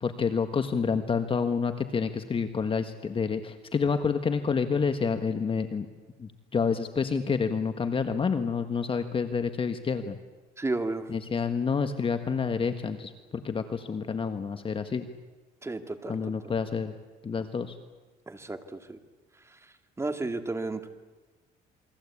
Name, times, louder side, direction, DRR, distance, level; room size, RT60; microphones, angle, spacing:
voice 1, 0.0-5.8 6.2-10.2 11.1-15.1 16.1-17.0 17.2-17.8, left 5 dB, 30° left, 8 dB, 1.5 m, -28 dB
voice 2, 10.6-11.0 15.6-16.2 18.3-19.0 20.0-20.9, right 2 dB, 15° right, 7 dB, 2.3 m, -32 dB
28.5 x 22.0 x 8.5 m, 1.3 s
cardioid pair, 110°, 17 cm